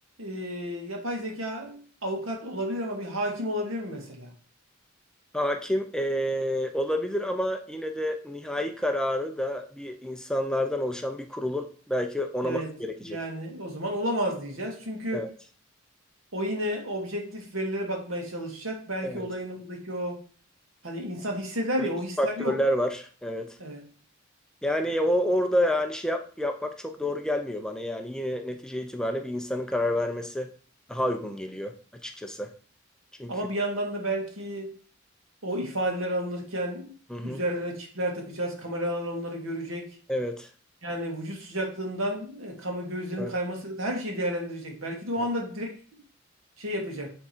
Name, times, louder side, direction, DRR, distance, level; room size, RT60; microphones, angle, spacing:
voice 1, 0.2-4.3 12.4-12.7 13.0-15.3 16.3-20.2 20.8-22.6 23.6-23.9 33.3-34.8 35.4-36.9 37.2-39.9 40.8-45.7 46.6-47.1, equal, 80° right, 2.0 m, -31 dB
voice 2, 5.3-13.2 15.1-15.3 19.0-19.2 21.8-21.9 22.2-23.6 24.6-30.5 30.9-31.8 32.0-32.5 33.2-33.3 37.1-37.4 40.1-40.5 43.2-43.3 45.2-45.3, equal, 5° left, 0.5 m, -29 dB
9.1 x 3.6 x 4.4 m
head